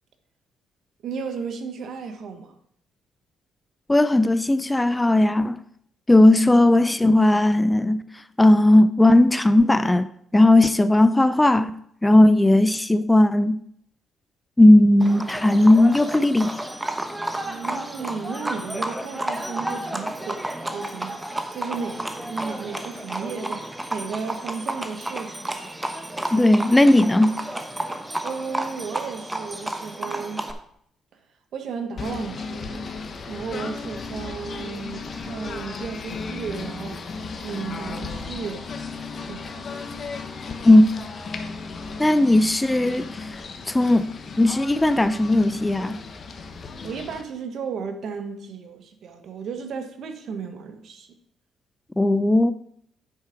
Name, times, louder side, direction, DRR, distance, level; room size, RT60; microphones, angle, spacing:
voice 1, 1.0-2.6 17.5-25.7 28.2-30.5 31.5-32.9 33.3-37.0 37.4-38.7 39.2-39.8 46.8-51.1, right 5 dB, 65° right, 1.2 m, -34 dB
voice 2, 3.9-5.6 6.1-8.0 8.4-10.1 10.3-11.7 12.0-13.6 14.6-16.5 26.3-27.4 40.6-40.8 42.0-43.3 43.7-44.0 44.4-46.0 52.0-52.5, left 1 dB, 10° left, 0.4 m, -16 dB
Livestock farm animals working animals, 15.0-30.5, right 1 dB, 10° right, 1.0 m, -31 dB
Singing / Bird, 32.0-47.2, left 4 dB, 45° left, 1.1 m, -35 dB
8.7 x 4.8 x 5.9 m
cardioid pair, 90°, 0 cm